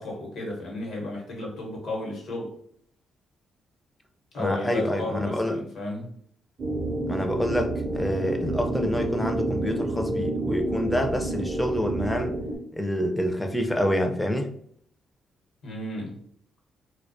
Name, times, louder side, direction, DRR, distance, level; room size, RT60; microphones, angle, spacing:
voice 1, 0.0-2.5 4.3-6.1 15.6-16.2, left 2 dB, 65° left, -1 dB, 0.9 m, -33 dB
voice 2, 4.4-5.6 7.1-12.4 12.7-14.5, equal, 10° left, 5 dB, 0.4 m, -27 dB
sound 1, 6.6-12.6, right 2 dB, 55° right, 0.4 m, -29 dB
2.3 x 2.1 x 2.5 m, 0.63 s
cardioid pair, 90°, 0 cm